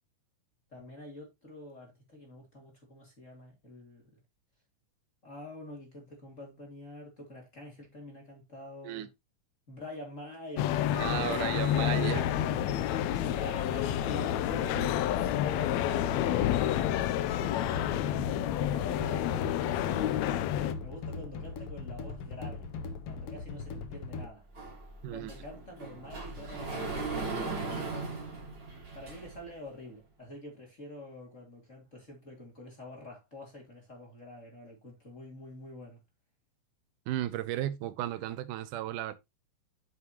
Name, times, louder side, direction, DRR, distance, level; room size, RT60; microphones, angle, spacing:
voice 1, 0.7-4.2 5.2-9.1 9.7-11.9 12.3-15.2 20.8-22.7 23.1-24.5 25.1-28.2 28.7-36.0, left 1 dB, 25° left, 2.9 m, -47 dB
sound 1, 10.6-20.7, left 12 dB, 80° left, 1.7 m, -29 dB
voice 2, 10.9-12.3 25.0-25.3 37.1-39.1, right 13 dB, 80° right, 2.1 m, -34 dB
sound 2, 12.0-24.3, left 4 dB, 60° left, 1.7 m, -40 dB
Sliding door, 24.5-29.5, right 3 dB, 35° right, 3.5 m, -38 dB
8.5 x 7.3 x 3.0 m
omnidirectional pair, 3.8 m